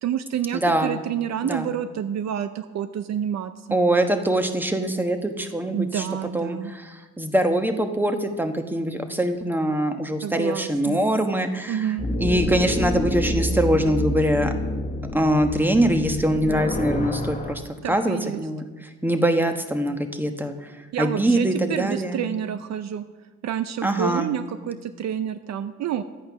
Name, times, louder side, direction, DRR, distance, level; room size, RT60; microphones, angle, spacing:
voice 1, 0.0-3.8 5.7-6.7 10.2-11.0 11.7-12.1 17.8-18.4 20.9-23.0 23.4-26.0, right 9 dB, 60° right, 12 dB, 0.6 m, -28 dB
voice 2, 0.5-1.0 1.4-1.7 3.7-6.1 6.3-14.5 15.1-22.4 23.8-24.3, right 1 dB, 5° right, 6 dB, 1.1 m, -23 dB
sound 1, 12.0-17.5, left 1 dB, 25° left, 1.4 m, -27 dB
11.5 x 8.7 x 5.9 m, 1.3 s
cardioid pair, 90°, 30 cm